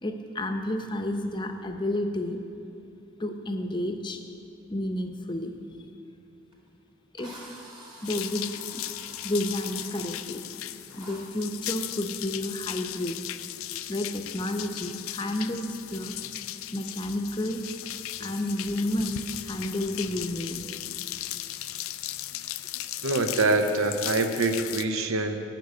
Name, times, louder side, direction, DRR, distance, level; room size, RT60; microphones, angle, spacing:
voice 1, 0.0-2.4 3.2-4.2 4.7-5.5 7.1-7.4 8.0-8.5 8.7-8.8 9.2-10.4 10.9-13.2 13.9-16.2 16.7-17.6 18.2-20.7, left 1 dB, 20° left, 5 dB, 0.7 m, -31 dB
Drill, 6.5-6.6 7.2-10.1 11.0-11.2, right 1 dB, 20° right, 1.7 m, -47 dB
sound 1, 8.0-24.9, left 13 dB, 80° left, 0.4 m, -37 dB
voice 2, 23.0-25.4, right 2 dB, 80° right, 7 dB, 0.7 m, -25 dB
11.5 x 6.2 x 8.2 m, 2.9 s
head